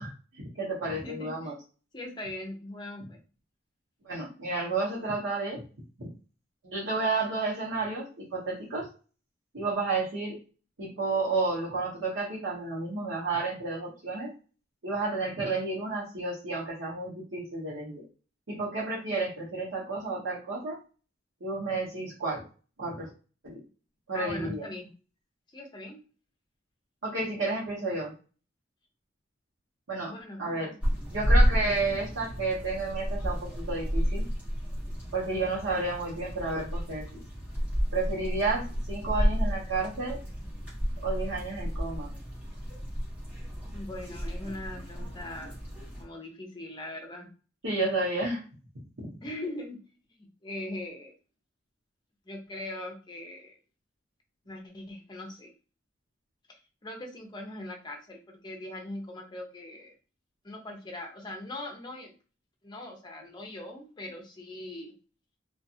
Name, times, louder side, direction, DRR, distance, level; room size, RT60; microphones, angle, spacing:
voice 1, 0.0-1.6 4.0-5.6 6.0-6.1 6.6-8.9 9.5-10.4 10.8-14.3 14.8-18.0 18.5-20.8 21.4-22.4 22.8-23.1 23.4-23.6 24.1-24.7 27.0-28.1 29.9-30.7 31.1-34.3 35.1-37.2 37.9-40.2 41.0-42.1 47.6-48.4, right 3 dB, 90° right, -6 dB, 0.9 m, -31 dB
voice 2, 0.9-1.5 1.9-3.2 24.1-24.9 25.5-26.0 30.1-30.4 30.6-30.7 31.1-31.4 43.7-45.6 46.0-47.3 49.2-49.8 50.1-51.1 52.3-53.6 54.5-55.5 56.5-59.9 60.4-62.1 62.6-64.9, left 1 dB, 25° left, 2 dB, 0.6 m, -41 dB
sound 1, 30.8-46.0, equal, 10° right, 1.0 m, -31 dB
2.4 x 2.4 x 2.7 m, 0.36 s
head